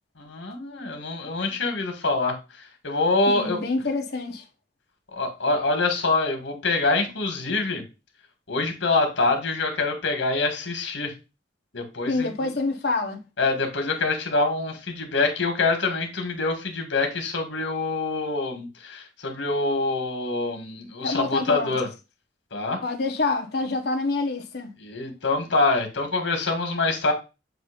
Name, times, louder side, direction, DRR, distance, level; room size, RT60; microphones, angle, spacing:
voice 1, 0.2-2.4 2.8-3.6 5.1-7.8 8.5-11.1 11.7-12.5 13.4-21.9 22.5-22.8 24.8-27.1, left 3 dB, 85° left, 1.9 m, -25 dB
voice 2, 3.3-4.4 12.1-13.2 21.0-21.7 22.8-24.7, left 3 dB, 60° left, 1.2 m, -27 dB
7.4 x 2.7 x 5.1 m
head